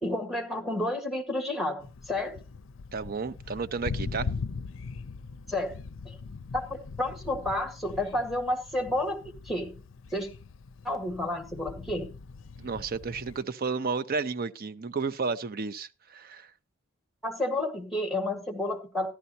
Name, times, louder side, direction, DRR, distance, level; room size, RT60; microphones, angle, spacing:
voice 1, 0.0-2.4 5.5-5.8 6.1-6.2 6.5-9.8 10.1-10.3 10.8-12.1 17.2-19.1, left 1 dB, ahead, 1.8 m, -31 dB
Thunder, 1.8-13.4, left 4 dB, 70° left, 0.5 m, -40 dB
voice 2, 2.9-4.3 12.6-16.5, right 4 dB, 45° right, 0.6 m, -32 dB
14.0 x 11.5 x 2.8 m
head